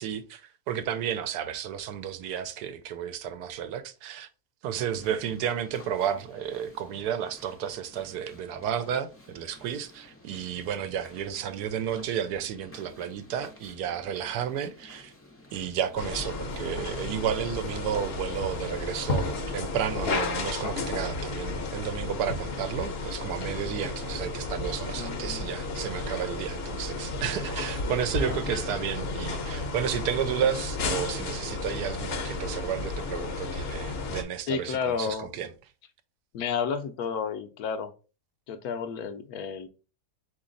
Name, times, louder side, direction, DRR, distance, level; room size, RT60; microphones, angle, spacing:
voice 1, 0.0-4.3 4.6-15.1 15.5-35.5, right 9 dB, 85° right, 1.1 m, -32 dB
sound 1, 4.7-19.5, left 1 dB, 20° left, 0.3 m, -53 dB
sound 2, 16.0-34.2, left 3 dB, 55° left, 0.8 m, -33 dB
voice 2, 24.9-25.5 34.5-35.3 36.3-37.9 38.5-39.7, left 6 dB, 75° left, 1.0 m, -31 dB
4.1 x 3.0 x 3.8 m
omnidirectional pair, 1.7 m